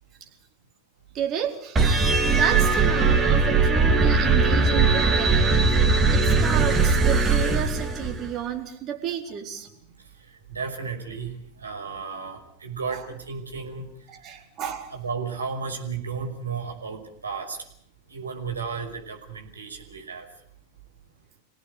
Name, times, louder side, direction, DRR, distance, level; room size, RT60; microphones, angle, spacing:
voice 1, 1.1-1.8 2.3-9.7 12.9-13.0 14.1-14.9, right 8 dB, 35° right, 3 dB, 4.5 m, -32 dB
sound 1, 1.8-8.3, right 4 dB, 15° right, 3.4 m, -20 dB
voice 2, 10.5-13.9 15.0-17.6 18.1-20.3, right 5 dB, 75° right, 3 dB, 5.7 m, -33 dB
28.0 x 18.0 x 8.4 m, 0.67 s
figure-of-eight pair, 90°, 0 cm